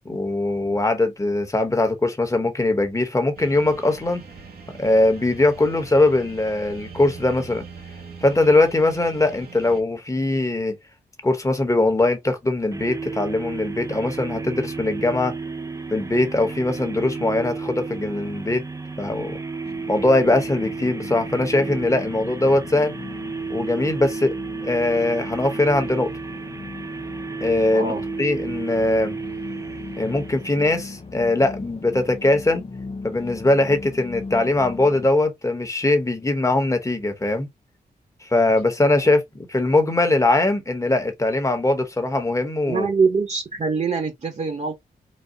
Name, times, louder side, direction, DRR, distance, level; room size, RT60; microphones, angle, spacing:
voice 1, 0.0-4.2 4.8-7.6 8.2-10.7 11.2-15.3 15.9-18.6 19.0-19.4 19.9-22.9 23.5-24.3 24.6-26.1 27.4-27.9 28.2-29.1 30.0-32.6 33.0-37.5 38.2-42.9, left 2 dB, 20° left, 1.2 m, -21 dB
sound 1, 3.4-9.8, right 5 dB, 70° right, 1.2 m, -42 dB
sound 2, 12.7-31.0, right 4 dB, 20° right, 0.6 m, -33 dB
sound 3, 19.6-35.1, left 4 dB, 40° left, 0.7 m, -38 dB
voice 2, 27.7-28.0 39.0-39.1 42.7-44.7, right 4 dB, 45° right, 1.2 m, -23 dB
4.2 x 2.3 x 3.8 m
wide cardioid pair, 95°, 16 cm